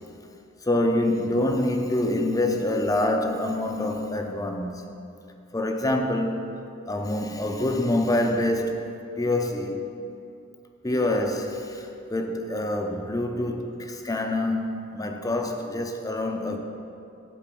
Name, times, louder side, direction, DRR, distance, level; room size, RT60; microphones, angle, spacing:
voice 1, 0.6-4.9 5.5-6.5 6.9-8.9 9.2-9.9 10.8-16.6, left 1 dB, 20° left, 0.6 m, -26 dB
9.1 x 4.8 x 7.4 m
head